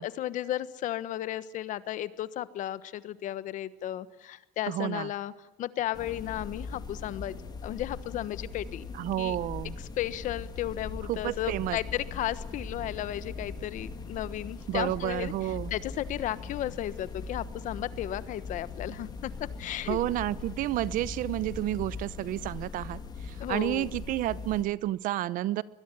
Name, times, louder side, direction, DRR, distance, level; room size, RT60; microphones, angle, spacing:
voice 1, 0.0-5.3 5.6-7.4 7.6-8.9 9.2-9.4 10.0-15.3 15.7-20.0 23.4-23.9, left 13 dB, 65° left, 15 dB, 1.2 m, -34 dB
voice 2, 4.7-5.1 8.9-9.7 11.1-11.8 14.7-15.7 19.9-25.6, right 14 dB, 70° right, 19 dB, 0.9 m, -30 dB
sound 1, 5.9-24.6, left 4 dB, 30° left, 2.6 m, -41 dB
Livestock farm animals working animals, 9.5-22.0, left 1 dB, 5° left, 3.4 m, -48 dB
22.5 x 21.5 x 9.9 m, 0.95 s
cardioid pair, 135°, 14 cm